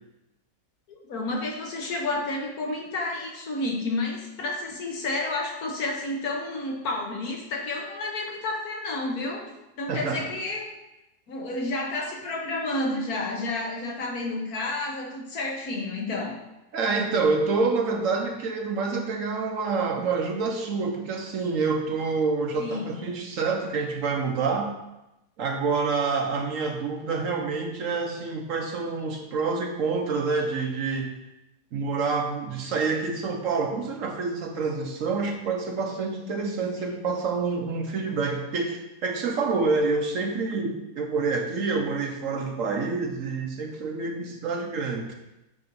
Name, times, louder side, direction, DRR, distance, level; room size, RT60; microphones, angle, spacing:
voice 1, 0.9-9.4 9.8-10.7 11.3-16.4 22.6-23.0 36.2-37.1, left 2 dB, 70° left, 0 dB, 1.6 m, -31 dB
voice 2, 9.9-10.2 16.7-24.7 25.4-31.1 31.7-45.1, right 4 dB, 65° right, 3 dB, 1.0 m, -27 dB
8.5 x 2.9 x 5.3 m, 0.94 s
omnidirectional pair, 1.7 m